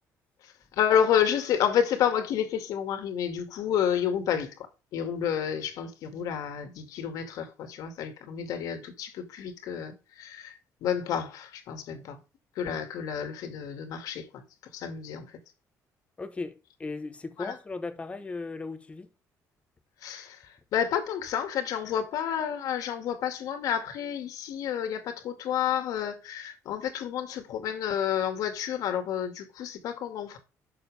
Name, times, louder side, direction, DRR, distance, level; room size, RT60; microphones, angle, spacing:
voice 1, 0.4-12.2 12.6-14.4 14.7-15.3 17.4-17.6 20.0-30.4, left 9 dB, 70° left, 2.4 m, -30 dB
voice 2, 16.2-19.1, left 3 dB, 20° left, 1.3 m, -37 dB
12.0 x 6.6 x 3.6 m
cardioid pair, 130°, 6 cm